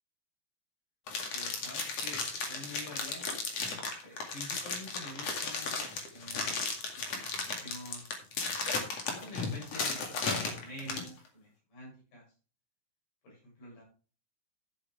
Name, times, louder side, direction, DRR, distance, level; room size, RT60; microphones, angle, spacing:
sound 1, 1.1-11.1, left 4 dB, 50° left, 3.1 m, -35 dB
voice 1, 1.3-3.4 4.0-6.5 6.9-7.1 7.5-8.1 9.0-12.2 13.2-13.8, left 1 dB, 80° left, -5 dB, 9.0 m, -47 dB
14.0 x 7.9 x 3.3 m, 0.37 s
omnidirectional pair, 4.0 m